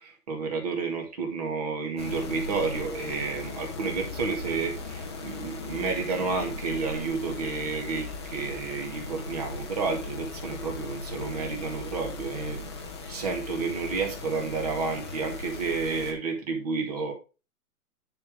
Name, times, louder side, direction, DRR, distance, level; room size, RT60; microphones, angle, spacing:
voice 1, 0.0-12.6 13.0-17.1, right 4 dB, 25° right, 3 dB, 1.8 m, -31 dB
sound 1, 2.0-16.1, left 3 dB, 15° left, 0.9 m, -38 dB
10.0 x 5.2 x 3.6 m, 0.31 s
hypercardioid pair, 180°, 46 cm